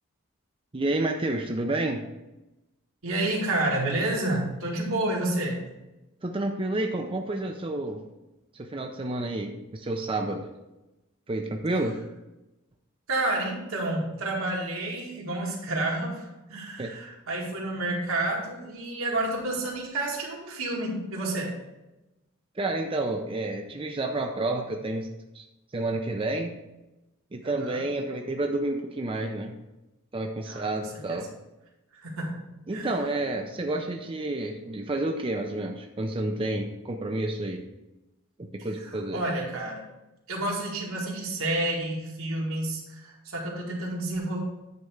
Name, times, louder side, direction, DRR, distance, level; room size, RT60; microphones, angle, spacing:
voice 1, 0.7-2.0 6.2-8.0 8.7-10.5 11.3-12.0 16.8-16.9 22.6-25.1 25.3-25.4 25.7-26.6 27.3-29.5 30.1-31.3 32.7-37.6 38.4-39.2, right 2 dB, 25° right, 3 dB, 0.5 m, -30 dB
voice 2, 3.0-5.6 13.1-21.5 27.6-27.8 30.5-31.2 31.9-32.3 32.7-33.0 38.6-39.9 40.3-44.4, right 2 dB, 80° right, -2 dB, 2.2 m, -30 dB
9.4 x 3.5 x 6.4 m, 0.99 s
head